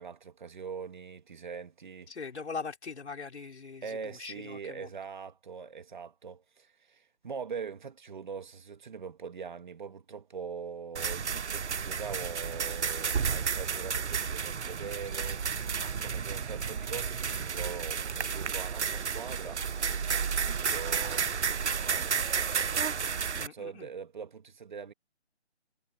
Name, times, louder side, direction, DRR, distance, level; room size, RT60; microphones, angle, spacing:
voice 1, 0.0-2.1 3.8-15.4 16.0-19.6 20.3-24.9, right 6 dB, 45° right, 2.0 m, -42 dB
voice 2, 2.1-4.9 23.3-23.9, left 5 dB, 75° left, 3.8 m, -41 dB
sound 1, 11.0-23.5, right 6 dB, 80° right, 1.0 m, -32 dB
hypercardioid pair, 170°, 34 cm